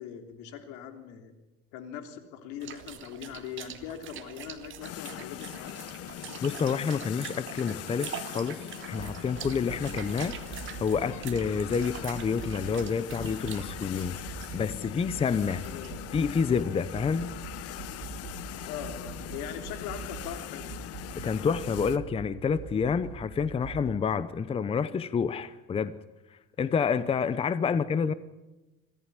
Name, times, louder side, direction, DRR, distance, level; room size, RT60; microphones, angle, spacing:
voice 1, 0.0-1.3 1.7-5.8 15.6-16.0 18.6-20.8 27.6-28.2, left 8 dB, 80° left, 3.4 m, -41 dB
sound 1, 2.6-16.2, right 10 dB, 40° right, 2.0 m, -45 dB
sound 2, 4.8-22.0, left 13 dB, 55° left, 1.1 m, -41 dB
voice 2, 6.4-8.1 8.3-8.6 8.9-10.3 10.8-14.2 14.5-15.6 16.1-17.3 21.2-26.0 26.6-28.1, left 6 dB, 20° left, 0.7 m, -28 dB
sound 3, 9.0-23.9, right 7 dB, 65° right, 4.1 m, -43 dB
24.5 x 15.0 x 9.8 m
cardioid pair, 155°, 30 cm